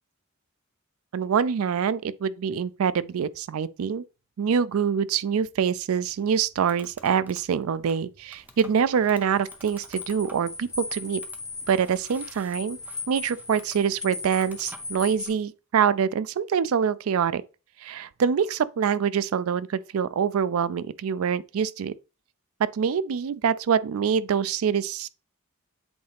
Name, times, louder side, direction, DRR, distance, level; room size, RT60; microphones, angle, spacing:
voice 1, 1.1-4.0 4.4-11.2 11.7-12.8 13.1-17.4 17.8-21.9 22.6-25.1, right 7 dB, 75° right, 0.4 m, -25 dB
sound 1, 6.0-15.4, right 1 dB, 10° right, 0.6 m, -51 dB
sound 2, 8.4-15.3, left 3 dB, 15° left, 1.1 m, -38 dB
7.9 x 3.8 x 3.4 m
head